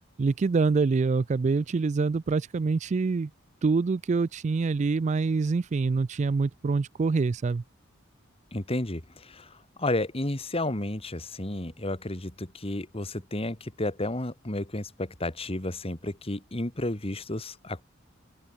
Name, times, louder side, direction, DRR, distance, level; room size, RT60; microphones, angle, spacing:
voice 1, 0.2-3.3 3.6-7.6, right 4 dB, 35° right, 0.3 m, -25 dB
voice 2, 8.5-17.8, left 1 dB, 30° left, 2.0 m, -32 dB
open air
head